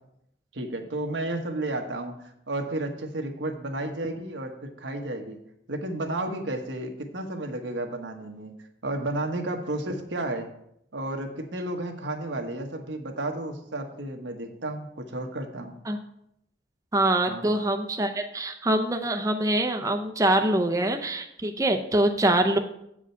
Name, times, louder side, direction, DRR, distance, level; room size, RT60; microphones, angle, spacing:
voice 1, 0.5-5.4 5.7-8.6 8.8-10.5 10.9-15.8 17.3-17.4, right 1 dB, 90° right, 3 dB, 1.3 m, -32 dB
voice 2, 16.9-22.6, right 1 dB, 20° right, 5 dB, 0.6 m, -24 dB
8.2 x 5.0 x 7.0 m, 0.77 s
head